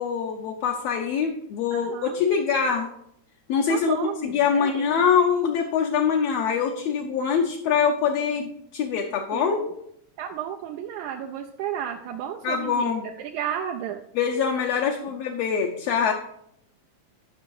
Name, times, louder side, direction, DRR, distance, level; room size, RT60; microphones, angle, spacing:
voice 1, 0.0-2.9 3.5-9.7 12.4-13.1 14.2-16.1, left 6 dB, 70° left, 2 dB, 1.7 m, -24 dB
voice 2, 1.7-2.2 3.7-4.9 9.3-9.7 10.2-12.9 13.2-14.0, right 10 dB, 80° right, 1 dB, 2.1 m, -33 dB
10.5 x 6.0 x 4.7 m, 0.74 s
omnidirectional pair, 3.4 m